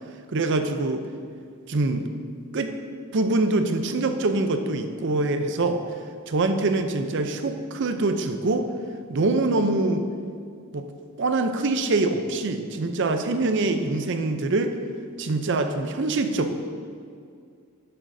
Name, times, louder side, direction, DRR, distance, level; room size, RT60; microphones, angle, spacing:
voice 1, 0.3-1.0 1.7-2.1 2.5-2.7 3.1-5.8 6.3-8.7 9.1-10.1 10.7-10.9 11.2-14.8 15.2-16.5, right 2 dB, 55° right, 7 dB, 0.5 m, -24 dB
11.0 x 7.5 x 2.7 m, 2.3 s
head